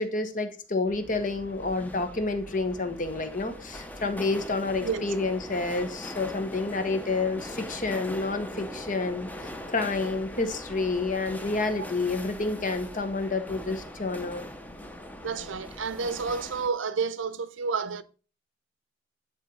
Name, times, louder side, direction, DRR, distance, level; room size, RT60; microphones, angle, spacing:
voice 1, 0.0-9.3 9.7-14.4, left 3 dB, 45° left, 1.2 m, -29 dB
sound 1, 0.9-16.7, left 1 dB, 10° left, 0.8 m, -41 dB
voice 2, 15.2-18.0, right 5 dB, 90° right, 0.7 m, -30 dB
11.0 x 3.7 x 5.5 m
head